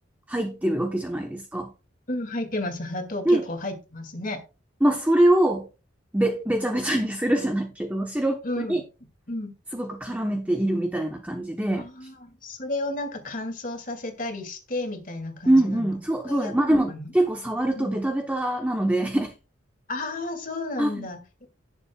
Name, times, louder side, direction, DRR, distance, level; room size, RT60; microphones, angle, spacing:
voice 1, 0.3-1.7 3.2-3.5 4.8-5.7 6.1-8.8 9.7-11.9 15.5-19.3 20.8-21.1, right 1 dB, 10° right, 0.9 m, -24 dB
voice 2, 2.1-4.4 8.4-8.8 9.3-9.5 11.7-15.9 16.3-17.1 17.8-17.9 19.9-21.2, left 2 dB, 45° left, 2.1 m, -32 dB
18.0 x 7.1 x 2.3 m
head